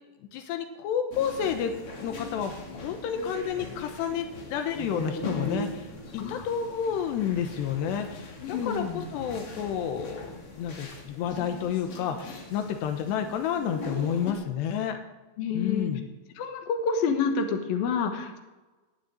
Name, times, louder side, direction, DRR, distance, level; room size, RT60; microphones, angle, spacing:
voice 1, 0.3-1.7 2.0-10.3 10.6-15.0 15.5-16.0, left 8 dB, 85° left, 6 dB, 3.3 m, -30 dB
sound 1, 1.1-14.3, left 2 dB, 45° left, 2.2 m, -40 dB
voice 2, 8.4-9.1 15.4-15.9 16.4-18.4, left 5 dB, 65° left, 5 dB, 3.1 m, -28 dB
19.0 x 6.8 x 9.0 m, 1.2 s
omnidirectional pair, 4.8 m